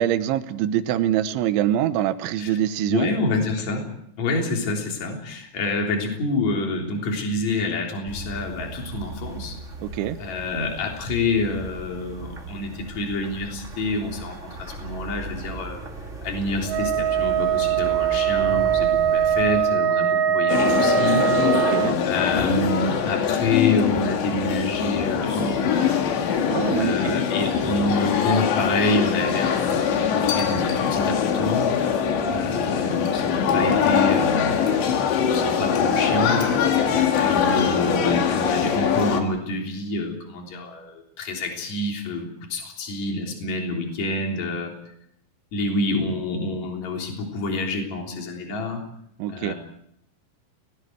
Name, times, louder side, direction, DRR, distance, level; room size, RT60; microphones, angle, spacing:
voice 1, 0.0-3.1 9.8-10.2 21.5-22.0 26.5-27.1 49.2-49.5, right 11 dB, 80° right, 11 dB, 3.3 m, -24 dB
voice 2, 2.9-3.8 4.2-9.6 10.2-15.8 16.2-21.3 22.0-26.0 26.7-29.8 30.1-31.7 32.3-34.9 35.3-36.5 36.9-44.7 45.5-48.8 49.3-49.5, left 2 dB, 40° left, 1 dB, 4.4 m, -27 dB
sound 1, 8.1-19.6, right 2 dB, 25° right, 1.9 m, -37 dB
Wind instrument woodwind instrument, 16.7-22.0, right 9 dB, 60° right, 2.8 m, -21 dB
sound 2, 20.5-39.2, left 7 dB, 70° left, 4.1 m, -22 dB
30.0 x 20.0 x 4.7 m, 0.73 s
omnidirectional pair, 5.5 m